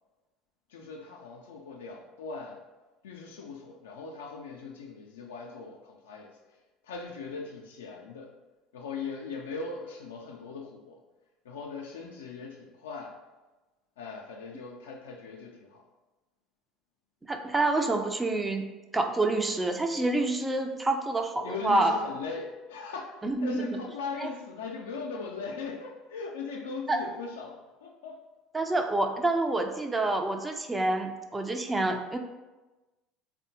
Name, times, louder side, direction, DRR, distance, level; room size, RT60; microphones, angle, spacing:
voice 1, 0.7-2.6 3.0-6.4 6.8-8.3 8.7-11.0 11.4-13.1 14.0-15.8 21.4-28.2, left 4 dB, 85° left, 0 dB, 0.3 m, -39 dB
voice 2, 17.3-18.7 18.9-22.0 23.2-23.8 24.2-24.3 26.9-27.0 28.5-32.2, right 2 dB, 15° right, 5 dB, 0.4 m, -27 dB
3.5 x 2.1 x 2.7 m, 1.1 s
hypercardioid pair, 75°, 0 cm